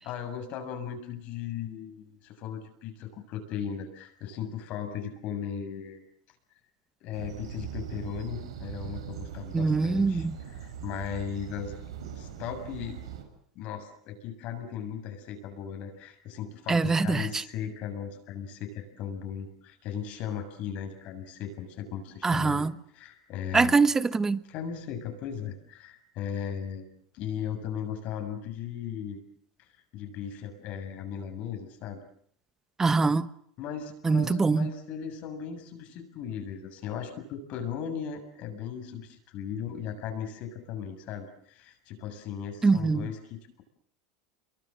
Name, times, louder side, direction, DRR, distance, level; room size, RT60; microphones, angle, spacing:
voice 1, 0.0-6.0 7.0-11.8 12.2-13.0 13.6-22.7 22.9-23.8 24.5-26.8 27.1-29.2 29.9-32.0 33.6-43.6, left 8 dB, 55° left, 7.2 m, -37 dB
sound 1, 7.1-13.2, right 8 dB, 85° right, 5.9 m, -40 dB
voice 2, 9.5-10.4 16.7-17.4 22.2-22.7 23.5-24.4 32.8-33.3 34.0-34.7 42.6-43.1, right 4 dB, 15° right, 1.3 m, -23 dB
29.0 x 23.5 x 7.7 m
hypercardioid pair, 100°, 3 cm